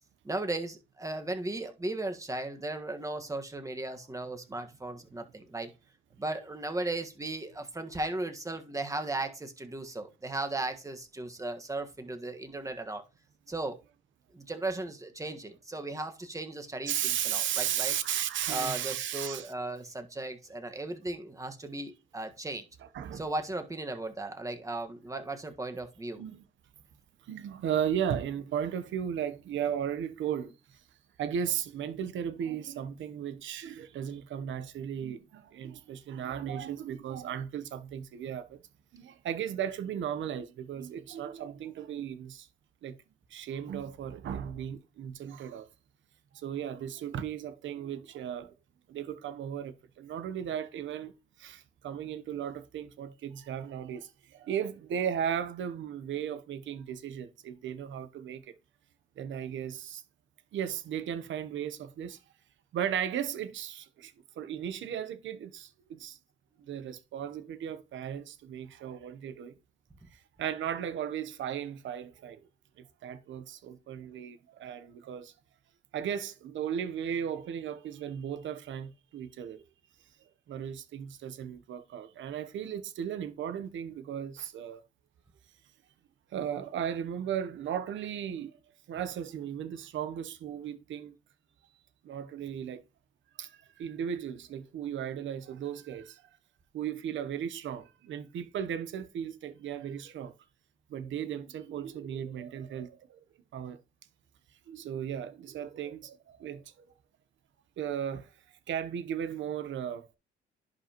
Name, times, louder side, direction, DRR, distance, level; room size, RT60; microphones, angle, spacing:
voice 1, 0.2-5.7 6.2-13.0 13.5-13.8 14.3-17.9 18.5-22.7 23.1-26.2, right 2 dB, 15° right, 1.6 m, -36 dB
voice 2, 16.9-19.5 22.9-23.3 26.2-26.4 27.2-30.8 31.2-38.6 38.9-42.5 42.8-43.0 43.3-45.7 46.3-48.5 48.9-58.5 59.2-60.0 60.5-62.2 62.7-66.2 66.6-69.5 70.1-72.5 72.8-75.3 75.9-79.6 80.5-84.8 86.3-88.6 88.9-91.2 92.0-92.8 93.4-96.2 96.7-100.3 100.9-103.2 103.5-103.8 104.7-106.7 107.8-108.3 108.7-110.1, right 9 dB, 70° right, 1.0 m, -36 dB
11.0 x 5.2 x 3.0 m
cardioid pair, 90°, 20 cm